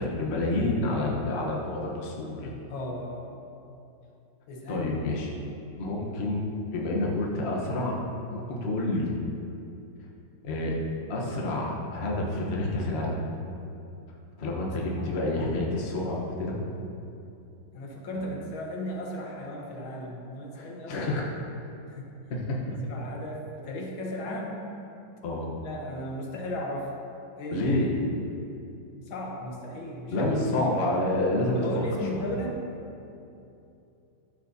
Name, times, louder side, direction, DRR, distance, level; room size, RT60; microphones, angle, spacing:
voice 1, 0.0-2.5 4.7-5.3 5.8-8.0 8.3-9.1 10.4-10.8 11.1-13.2 14.4-16.6 18.1-18.2 20.6-21.2 22.3-22.6 25.2-25.5 27.5-27.9 30.1-31.6 32.1-32.2, left 2 dB, 40° left, -2 dB, 1.0 m, -28 dB
voice 2, 2.7-3.3 4.5-5.1 14.6-15.5 17.7-21.2 21.9-22.1 22.9-24.7 25.6-27.0 27.4-27.6 29.1-30.3 31.5-32.6, left 1 dB, 85° left, 0 dB, 1.8 m, -36 dB
12.5 x 6.2 x 2.7 m, 2.8 s
omnidirectional pair, 2.2 m